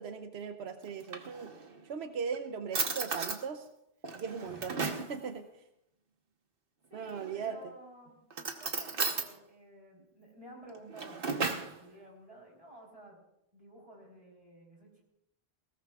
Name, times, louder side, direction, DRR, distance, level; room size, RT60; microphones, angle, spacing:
voice 1, 0.0-1.5 1.8-3.7 4.2-5.6 6.9-7.6, right 6 dB, 90° right, 7 dB, 1.0 m, -39 dB
Drawer open or close, 0.8-1.8 2.3-2.4 2.7-3.4 4.0-5.1 7.0-7.5 8.3-9.3 10.7-11.7, right 4 dB, 60° right, 1.3 m, -35 dB
voice 2, 6.9-8.2 8.6-13.2 13.5-15.0, right 1 dB, 35° right, -2 dB, 4.0 m, -53 dB
20.0 x 17.5 x 2.4 m, 0.82 s
omnidirectional pair, 1.0 m